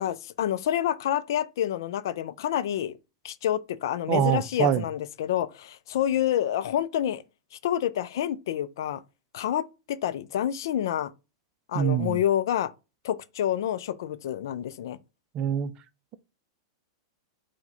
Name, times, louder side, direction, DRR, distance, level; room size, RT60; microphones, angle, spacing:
voice 1, 0.0-3.0 3.2-7.2 7.6-9.0 9.3-11.1 11.7-12.7 13.0-15.0, left 11 dB, 70° left, 0.4 m, -28 dB
voice 2, 4.1-4.8 11.7-12.2 15.3-15.7, right 9 dB, 40° right, 0.4 m, -24 dB
4.6 x 2.2 x 4.0 m
hypercardioid pair, 110°, 2 cm